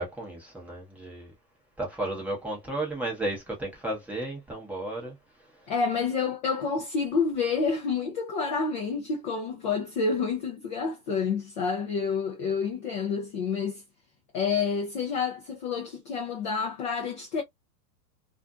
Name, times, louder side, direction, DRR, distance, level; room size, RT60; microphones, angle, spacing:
voice 1, 0.0-1.3 1.8-5.1, right 2 dB, 5° right, 0.7 m, -33 dB
voice 2, 5.7-13.8 14.3-17.4, left 5 dB, 30° left, 0.4 m, -28 dB
2.5 x 2.5 x 2.2 m
hypercardioid pair, 140°, 48 cm